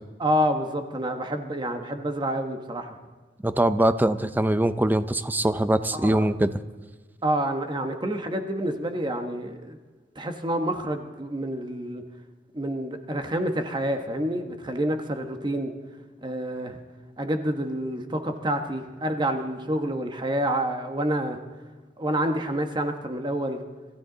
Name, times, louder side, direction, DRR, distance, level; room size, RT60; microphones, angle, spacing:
voice 1, 0.2-3.0 6.0-6.3 7.2-9.8 10.2-12.0 12.5-15.7 16.2-16.8 17.2-21.4 22.0-23.6, right 1 dB, 25° right, 6 dB, 1.2 m, -28 dB
voice 2, 3.4-6.5, right 1 dB, 10° right, 12 dB, 0.6 m, -22 dB
26.0 x 13.5 x 3.9 m, 1.3 s
head